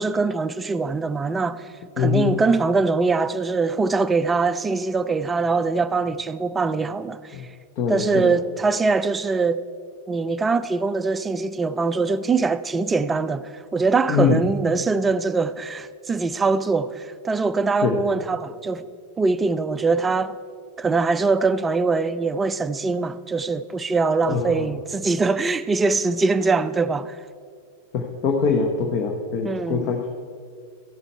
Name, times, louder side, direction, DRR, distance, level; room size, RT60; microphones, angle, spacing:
voice 1, 0.0-1.7 2.0-7.4 7.9-9.6 10.1-18.8 19.2-20.4 20.8-27.2 29.4-29.9, right 4 dB, 15° right, 0.4 m, -23 dB
voice 2, 2.0-2.3 7.3-7.5 7.8-8.3 14.1-14.4 17.8-18.0 24.3-24.7 27.9-30.1, left 5 dB, 40° left, 1.0 m, -23 dB
14.5 x 8.0 x 4.4 m
figure-of-eight pair, 90°, 0 cm